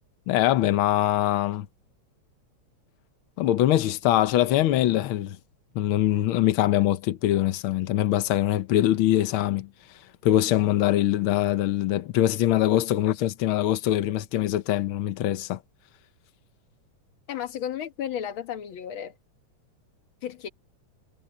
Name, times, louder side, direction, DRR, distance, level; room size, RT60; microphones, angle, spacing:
voice 1, 0.3-1.7 3.4-5.4 5.7-9.7 10.2-15.6, left 13 dB, 85° left, 1.1 m, -23 dB
voice 2, 17.3-19.1 20.2-20.5, left 9 dB, 55° left, 1.8 m, -33 dB
omnidirectional pair, 3.4 m